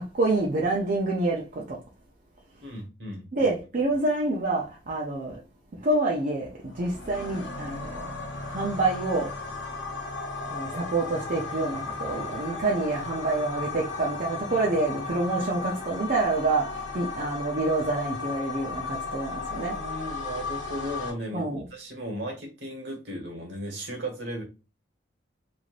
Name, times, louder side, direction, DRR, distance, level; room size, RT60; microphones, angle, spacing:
voice 1, 0.0-1.8 3.3-5.4 5.7-8.1 8.5-9.3 10.5-19.8 21.3-21.6, right 2 dB, 45° right, 0.5 m, -27 dB
voice 2, 2.6-3.5 19.5-24.4, equal, 65° right, 1.2 m, -36 dB
sound 1, 6.7-21.1, left 4 dB, 75° left, 0.7 m, -35 dB
3.2 x 2.5 x 2.4 m
head